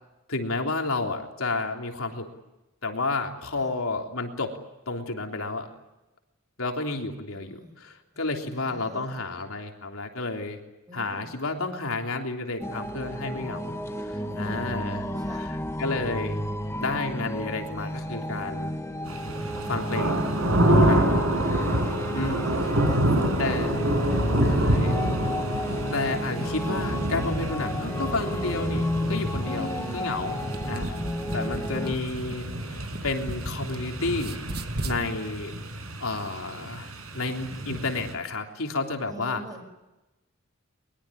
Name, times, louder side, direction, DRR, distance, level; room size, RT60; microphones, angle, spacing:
voice 1, 0.3-2.3 2.8-4.5 4.9-5.7 6.6-10.6 10.9-13.7 14.0-16.4 16.7-18.7 19.7-20.2 20.6-21.3 22.1-22.7 23.4-23.8 24.4-25.0 25.9-30.4 30.7-31.0 31.3-32.4 32.7-34.4 34.8-35.5 36.0-39.4, left 3 dB, 75° left, 3 dB, 3.4 m, -31 dB
voice 2, 7.3-7.8 8.1-9.2 10.9-11.3 14.3-15.5 22.1-24.4 29.5-30.1 39.1-39.6, equal, 15° right, 6 dB, 6.0 m, -42 dB
sound 1, 12.6-31.9, left 1 dB, 15° left, 1.5 m, -33 dB
sound 2, 19.0-38.1, right 1 dB, 75° right, 5.8 m, -27 dB
sound 3, 30.4-33.8 34.1-35.0, right 1 dB, 50° right, 1.7 m, -37 dB
23.0 x 22.0 x 9.9 m, 1.0 s
head